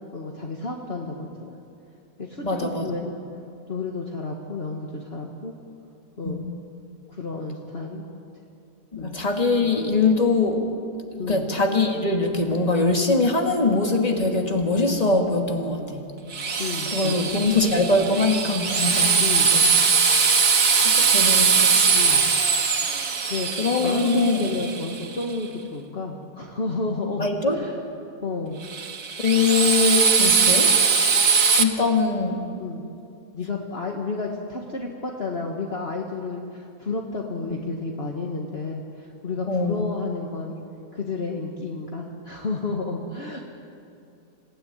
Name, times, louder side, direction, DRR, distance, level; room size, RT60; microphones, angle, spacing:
voice 1, 0.0-1.6 2.2-3.2 3.7-5.5 6.2-6.5 7.1-8.1 9.0-9.2 11.2-11.5 16.6-17.5 19.2-19.5 21.9-22.3 23.3-23.5 23.8-27.8 28.2-28.6 32.6-32.8 33.3-40.6 40.9-43.4, left 3 dB, 40° left, 0 dB, 1.9 m, -31 dB
voice 2, 2.4-2.9 6.2-6.4 8.9-10.7 11.1-16.0 16.9-19.2 19.5-19.6 20.8-21.9 23.6-24.5 27.2-27.6 29.2-30.7 31.6-32.4 39.5-39.8, left 3 dB, 25° left, 2 dB, 2.4 m, -22 dB
Drill, 16.3-25.2 28.6-31.6, right 5 dB, 85° right, 2.0 m, -21 dB
27.0 x 16.5 x 9.7 m, 2.6 s
omnidirectional pair, 1.6 m